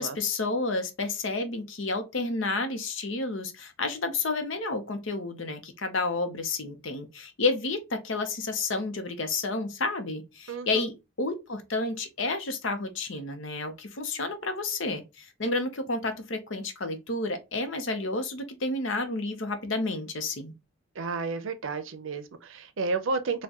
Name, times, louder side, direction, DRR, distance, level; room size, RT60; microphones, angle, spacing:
voice 1, 0.0-20.5, left 3 dB, 65° left, 0.7 m, -30 dB
voice 2, 10.5-10.9 21.0-23.4, right 4 dB, 70° right, 0.5 m, -31 dB
4.3 x 2.2 x 2.9 m
head